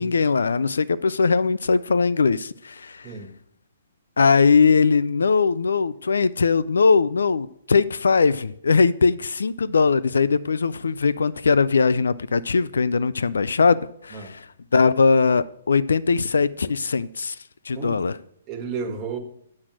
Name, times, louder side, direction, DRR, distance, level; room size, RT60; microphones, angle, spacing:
voice 1, 0.0-3.1 4.2-13.8 14.0-14.2 14.7-17.4 17.7-18.1, left 5 dB, 85° left, 0.4 m, -20 dB
voice 2, 3.0-3.4 14.1-14.4 17.7-18.1 18.5-19.2, right 5 dB, 30° right, 1.5 m, -32 dB
8.4 x 7.3 x 6.2 m
hypercardioid pair, 135°, 0 cm